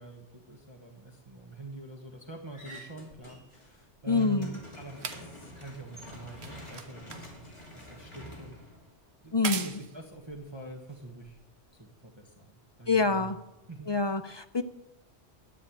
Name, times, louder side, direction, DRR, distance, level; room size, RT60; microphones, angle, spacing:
voice 1, 0.0-8.6 9.2-11.4 11.7-13.3 13.7-13.9, right 2 dB, 25° right, 0 dB, 1.3 m, -45 dB
sound 1, 2.5-3.7 4.0-9.3, equal, 25° left, 2.8 m, -48 dB
sound 2, 3.1-11.7 12.6-12.7, right 6 dB, 70° right, 1.2 m, -43 dB
voice 2, 4.1-4.6 9.3-9.7 12.9-13.4 13.9-14.6, left 4 dB, 45° left, 8 dB, 0.3 m, -26 dB
10.0 x 8.8 x 8.9 m, 0.94 s
omnidirectional pair, 1.2 m